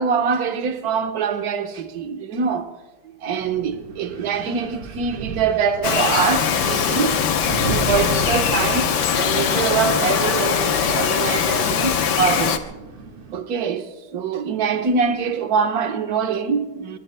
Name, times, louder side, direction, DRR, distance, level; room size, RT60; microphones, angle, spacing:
voice 1, 0.0-2.7 3.2-7.2 7.6-8.9 9.1-12.6 13.3-17.0, right 6 dB, 50° right, 1.4 m, -24 dB
Wind, 3.4-13.4, right 3 dB, 90° right, 2.7 m, -35 dB
Bird vocalization bird call bird song, 5.8-12.6, left 7 dB, 60° left, 1.4 m, -21 dB
27.5 x 23.0 x 2.2 m
omnidirectional pair, 2.4 m